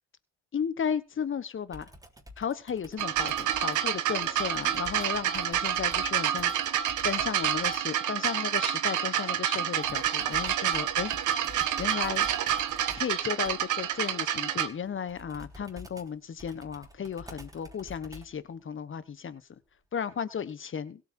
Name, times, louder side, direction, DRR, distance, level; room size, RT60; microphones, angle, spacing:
voice 1, 0.5-1.9 2.4-11.1 11.8-12.3 12.9-19.4 19.9-21.0, left 7 dB, 40° left, 1.3 m, -34 dB
Computer keyboard, 1.7-8.0 9.8-18.5, left 1 dB, 10° right, 3.4 m, -49 dB
sound 1, 3.0-14.7 15.6-15.7, right 10 dB, 80° right, 1.5 m, -28 dB
17.0 x 8.3 x 4.5 m
cardioid pair, 90°, 30 cm